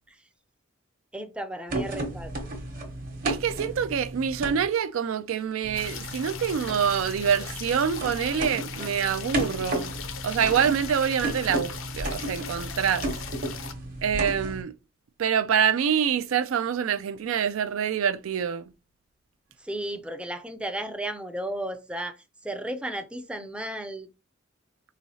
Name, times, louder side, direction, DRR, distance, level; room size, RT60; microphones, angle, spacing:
voice 1, 1.1-2.5 19.6-24.1, right 1 dB, 5° right, 0.4 m, -34 dB
sound 1, 1.7-4.6 5.6-14.6, right 1 dB, 45° right, 1.1 m, -34 dB
voice 2, 3.2-10.0 10.2-13.1 14.0-14.7 15.2-18.6, right 7 dB, 85° right, 0.4 m, -26 dB
sound 2, 5.7-13.7, left 8 dB, 80° left, 0.6 m, -39 dB
4.5 x 3.1 x 2.7 m
head